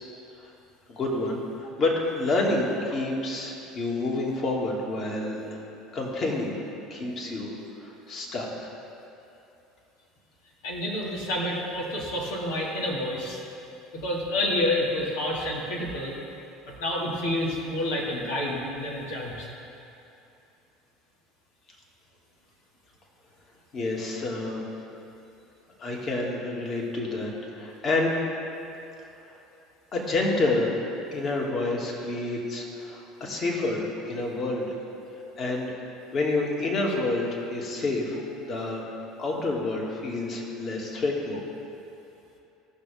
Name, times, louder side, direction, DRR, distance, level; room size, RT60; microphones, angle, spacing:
voice 1, 0.9-5.6 5.9-6.6 6.9-8.7 23.7-24.6 25.8-28.2 29.2-29.4 29.9-30.7 31.1-34.7 35.1-35.7 36.1-38.8 39.2-41.4, left 2 dB, 45° left, -2 dB, 2.2 m, -28 dB
voice 2, 10.6-13.4 13.9-16.1 16.7-19.5, left 1 dB, 85° left, -4 dB, 2.1 m, -29 dB
17.0 x 6.4 x 3.5 m, 2.8 s
supercardioid pair, 90°, 0 cm